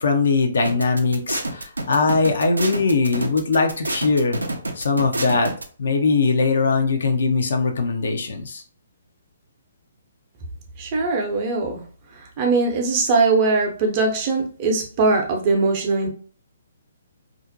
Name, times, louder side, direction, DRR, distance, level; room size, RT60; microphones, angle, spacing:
voice 1, 0.0-4.4 4.8-5.5 5.8-8.6, left 4 dB, 60° left, 4 dB, 0.5 m, -20 dB
sound 1, 0.6-5.6, right 2 dB, 80° right, 0.4 m, -28 dB
voice 2, 10.8-11.8 12.4-16.1, right 3 dB, 35° right, 2 dB, 0.6 m, -21 dB
2.5 x 2.0 x 2.6 m, 0.42 s
figure-of-eight pair, 130°, 0 cm